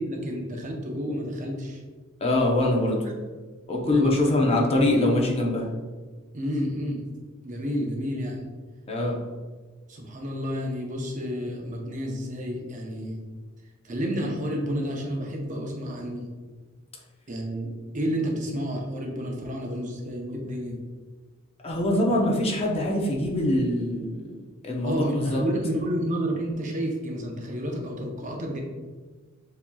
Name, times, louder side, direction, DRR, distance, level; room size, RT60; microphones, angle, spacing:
voice 1, 0.0-1.8 3.8-4.7 6.3-7.1 7.4-8.5 9.9-13.2 13.8-16.3 17.3-20.8 24.8-28.6, equal, 35° right, 0 dB, 0.6 m, -30 dB
voice 2, 2.2-3.0 3.7-5.7 8.9-9.2 21.6-24.3 24.6-25.4, left 1 dB, 30° left, -1 dB, 0.6 m, -23 dB
7.0 x 2.8 x 2.3 m, 1.4 s
head